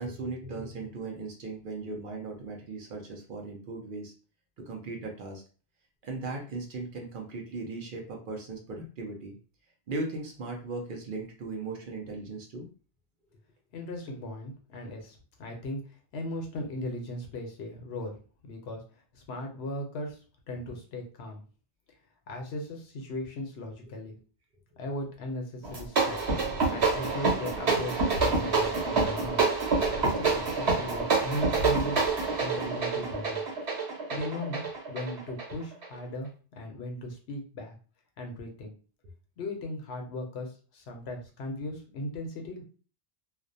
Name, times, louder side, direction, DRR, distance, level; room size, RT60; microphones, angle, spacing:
voice 1, 0.0-4.1 4.6-5.4 6.0-9.3 9.9-12.7, right 3 dB, 60° right, 1 dB, 0.7 m, -37 dB
voice 2, 13.7-15.8 16.1-18.2 18.4-18.8 19.1-20.2 20.5-21.4 22.3-24.2 24.8-29.4 30.0-32.0 32.4-33.4 34.1-37.8 38.2-38.7 39.4-42.6, left 1 dB, 75° left, 2 dB, 0.9 m, -37 dB
sound 1, 25.6-35.9, right 4 dB, 75° right, 1.2 m, -27 dB
2.4 x 2.1 x 2.6 m, 0.38 s
omnidirectional pair, 1.1 m